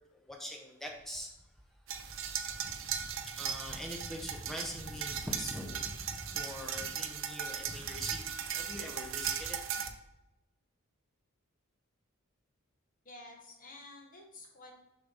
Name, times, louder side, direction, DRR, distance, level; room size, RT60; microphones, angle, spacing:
voice 1, 0.1-1.3 1.9-9.6, equal, ahead, 1 dB, 0.8 m, -43 dB
sound 1, 1.9-9.9, right 8 dB, 60° right, 0.5 m, -38 dB
voice 2, 13.0-14.8, left 2 dB, 40° left, 1 dB, 1.2 m, -51 dB
6.6 x 3.3 x 5.5 m, 0.96 s
head